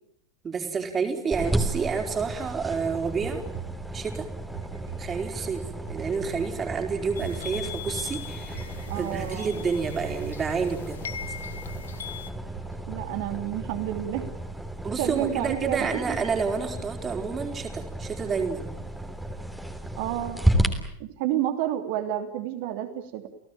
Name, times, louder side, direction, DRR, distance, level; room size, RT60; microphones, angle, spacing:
voice 1, 0.4-3.4 3.9-4.3 5.0-11.0 14.8-18.7, right 5 dB, 20° right, 4 dB, 4.6 m, -29 dB
sound 1, 1.3-20.7, right 1 dB, 5° right, 3.3 m, -33 dB
sound 2, 2.6-4.2 4.5-6.9 7.2-9.6 9.9-10.9 11.2-12.0 12.5-13.6 13.9-14.4, right 9 dB, 70° right, 4.8 m, -44 dB
sound 3, 7.1-12.3, left 8 dB, 65° left, 1.8 m, -40 dB
voice 2, 8.9-9.6 12.9-14.3 15.0-16.2 20.0-20.4 21.0-23.3, right 12 dB, 45° right, 7 dB, 3.2 m, -30 dB
30.0 x 17.5 x 9.2 m, 0.73 s
figure-of-eight pair, 90°, 0 cm